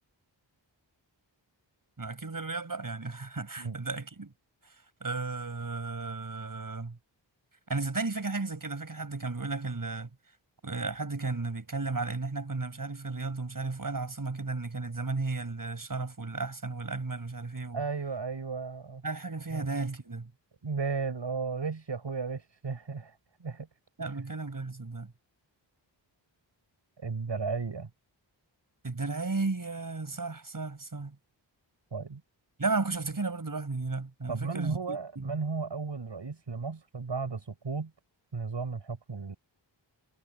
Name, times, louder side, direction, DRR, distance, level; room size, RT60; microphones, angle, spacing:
voice 1, 2.0-4.3 4.6-4.8 5.0-7.0 7.7-10.1 10.6-17.8 19.0-20.3 24.0-25.1 28.8-31.2 32.6-35.4, right 3 dB, 45° right, 6.1 m, -34 dB
voice 2, 17.7-19.0 19.5-19.7 20.6-23.7 27.0-27.9 31.9-32.2 34.3-37.9 38.3-39.4, right 4 dB, 65° right, 7.2 m, -34 dB
wide cardioid pair, 85°, 46 cm